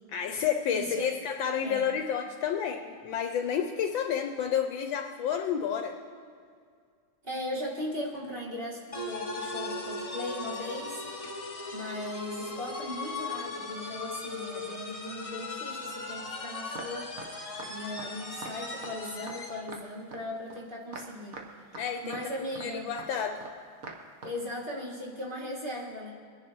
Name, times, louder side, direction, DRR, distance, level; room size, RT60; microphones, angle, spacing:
voice 1, 0.1-5.9 21.8-22.2 22.6-23.4, left 8 dB, 75° left, 4 dB, 1.3 m, -30 dB
voice 2, 0.7-1.1 1.6-1.9 7.2-11.0 11.7-17.1 17.7-21.4 22.0-22.9 24.2-26.1, left 1 dB, 25° right, -4 dB, 1.7 m, -38 dB
sound 1, 8.9-19.7, left 3 dB, 35° left, 0.5 m, -38 dB
sound 2, 16.8-16.9 17.2-17.3 17.6-17.7 18.0-18.1 18.4-18.5 18.8-18.9 19.3-19.4 19.7-19.8 20.1-20.2 20.5-20.6 20.9-21.1 21.3-21.5 21.7-21.8 22.1-22.3 22.6-22.7 23.0-23.1 23.4-23.5 23.8-24.0 24.2-24.3, right 3 dB, 50° right, 1.4 m, -42 dB
21.5 x 10.5 x 3.0 m, 2.1 s
omnidirectional pair, 2.2 m